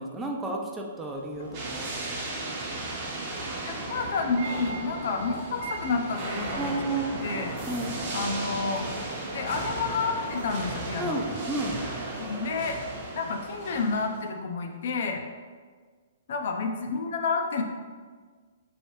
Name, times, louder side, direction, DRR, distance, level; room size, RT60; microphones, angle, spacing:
voice 1, 0.0-2.4 6.5-7.2 7.7-7.9 11.0-11.8, right 2 dB, 10° right, 1 dB, 0.3 m, -32 dB
sound 1, 1.2-9.5, equal, 70° right, 0.8 m, -46 dB
sound 2, 1.5-14.2, right 2 dB, 35° right, 0.7 m, -35 dB
voice 2, 3.7-6.7 7.1-7.5 8.1-8.9 9.3-11.2 12.2-12.8 13.1-15.2 16.3-17.6, left 4 dB, 60° left, 4 dB, 0.4 m, -30 dB
3.2 x 2.7 x 2.9 m, 1.5 s
hypercardioid pair, 150°, 0 cm